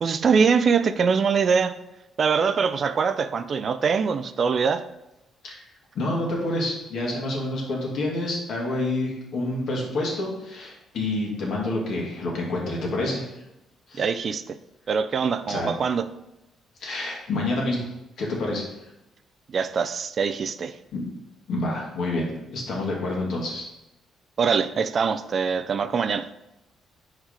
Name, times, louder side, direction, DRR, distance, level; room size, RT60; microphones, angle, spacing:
voice 1, 0.0-1.8 2.2-4.9 14.0-14.6 14.9-16.1 19.5-20.8 24.4-26.3, right 5 dB, 50° right, 12 dB, 0.4 m, -23 dB
voice 2, 5.9-13.3 13.9-14.1 15.5-15.7 16.8-17.9 18.2-18.7 20.9-21.0 21.5-23.6, left 2 dB, 70° left, -2 dB, 1.9 m, -28 dB
4.7 x 4.4 x 5.0 m, 0.91 s
cardioid pair, 90°, 0 cm